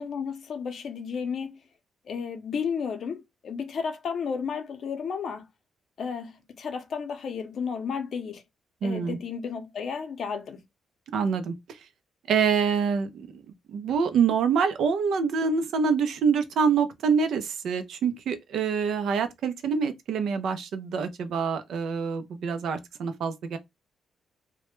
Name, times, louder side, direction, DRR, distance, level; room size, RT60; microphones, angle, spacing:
voice 1, 0.0-1.6 2.1-5.5 6.0-8.4 8.8-10.6, left 6 dB, 65° left, 0.6 m, -33 dB
voice 2, 8.8-9.2 11.1-11.5 12.3-13.4 13.7-23.6, right 6 dB, 75° right, 0.4 m, -26 dB
2.1 x 2.1 x 2.9 m
cardioid pair, 75°, 0 cm